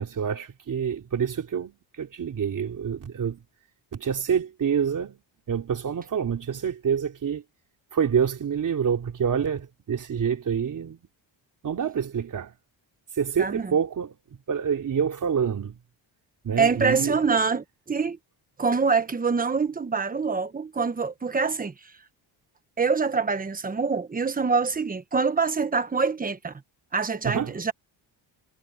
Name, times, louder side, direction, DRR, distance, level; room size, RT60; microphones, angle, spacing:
voice 1, 0.0-3.4 3.9-5.2 5.5-7.4 7.9-11.0 11.6-12.5 13.2-14.1 14.5-15.8 16.4-17.2 27.2-27.6, right 7 dB, 40° right, 3.5 m, -27 dB
voice 2, 13.4-13.7 16.6-18.2 18.6-21.7 22.8-26.5 26.9-27.7, right 5 dB, 20° right, 1.2 m, -25 dB
cardioid pair, 140°, 46 cm